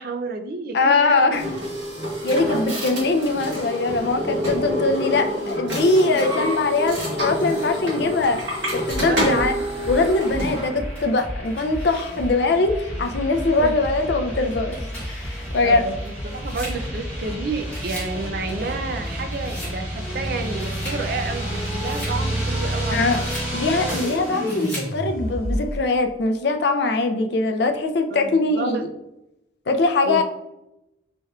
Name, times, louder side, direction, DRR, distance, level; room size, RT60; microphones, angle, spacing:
voice 1, 0.0-1.4 1.7-1.8 2.9-3.0 9.0-9.5 13.6-13.8 15.6-23.2 28.1-28.9 30.1-30.2, right 3 dB, 50° right, 6 dB, 0.4 m, -30 dB
voice 2, 0.7-1.6 2.2-9.5 9.9-14.8 15.1-15.8 22.9-28.9 29.7-30.2, left 3 dB, 60° left, 6 dB, 0.4 m, -22 dB
sound 1, 1.3-10.7, equal, 75° right, 1.5 m, -27 dB
sound 2, 8.9-25.8, equal, 10° right, 1.4 m, -30 dB
sound 3, 10.9-12.5 13.0-13.1 14.3-17.3 17.6-18.2 18.5-19.8 20.2-21.0 21.4-22.2 22.7-23.5 24.2-24.9, equal, 10° left, 1.2 m, -39 dB
4.2 x 3.4 x 2.3 m, 0.90 s
head